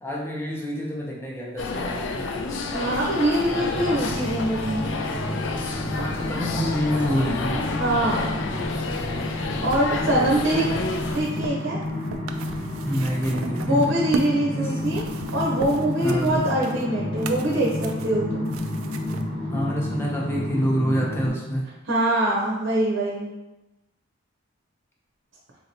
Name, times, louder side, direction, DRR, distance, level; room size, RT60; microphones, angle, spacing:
voice 1, 0.0-2.3 2.9-3.3 5.8-7.6 12.8-14.0 14.5-14.8 16.0-16.4 19.5-21.7, equal, 10° left, -3 dB, 0.6 m, -27 dB
sound 1, 1.6-11.2, left 3 dB, 65° left, 0.4 m, -30 dB
voice 2, 2.7-4.9 7.8-8.4 9.3-11.8 13.6-18.5 21.9-23.3, right 1 dB, 70° right, -4 dB, 0.7 m, -24 dB
sound 2, 3.6-21.3, left 1 dB, 30° left, 1.0 m, -31 dB
sound 3, 9.2-14.4 14.7-19.2 20.0-20.1, right 4 dB, 90° right, 0.3 m, -37 dB
3.8 x 2.8 x 2.7 m, 1.0 s
head